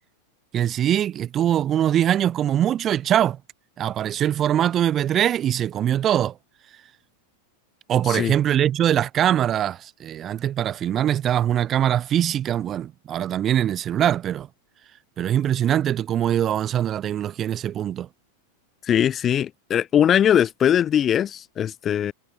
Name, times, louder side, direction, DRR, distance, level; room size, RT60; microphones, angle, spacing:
voice 1, 0.5-3.4 3.8-6.3 7.9-14.5 15.2-18.1, right 10 dB, 30° right, 2.4 m, -22 dB
voice 2, 18.8-22.1, left 9 dB, 25° left, 2.8 m, -21 dB
figure-of-eight pair, 90°, 0 cm